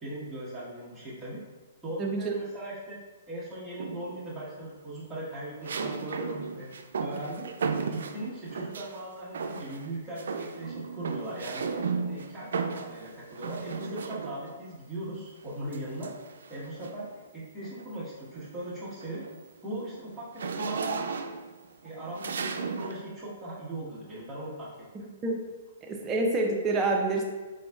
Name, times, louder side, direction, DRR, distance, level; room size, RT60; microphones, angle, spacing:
voice 1, 0.0-1.4 1.8-3.0 3.3-6.7 7.0-7.5 7.9-11.7 12.0-16.1 16.5-19.2 19.6-21.1 21.8-24.7 25.0-25.1, right 1 dB, 5° right, -10 dB, 1.3 m, -39 dB
voice 2, 2.0-2.3 25.2-25.4 25.8-27.2, right 2 dB, 20° right, 0 dB, 0.6 m, -27 dB
sound 1, 3.8-4.3 5.6-9.0 9.3-9.9 10.2-14.6 15.7-17.1 17.6-17.9 18.2-23.0, right 5 dB, 80° right, 0.3 m, -35 dB
4.0 x 3.9 x 2.3 m, 1.3 s
hypercardioid pair, 145°, 0 cm